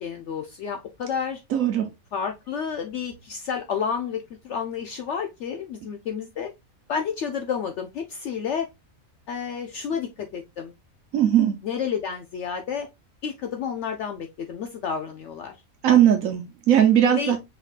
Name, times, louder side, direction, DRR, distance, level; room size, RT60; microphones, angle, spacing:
voice 1, 0.0-1.4 2.1-6.5 6.9-8.7 9.3-10.7 11.6-12.9 13.2-15.5 17.1-17.3, left 7 dB, 65° left, 0.8 m, -30 dB
voice 2, 1.5-1.9 11.1-11.6 15.8-17.4, right 10 dB, 75° right, 1.1 m, -19 dB
4.8 x 3.6 x 2.4 m
omnidirectional pair, 1.4 m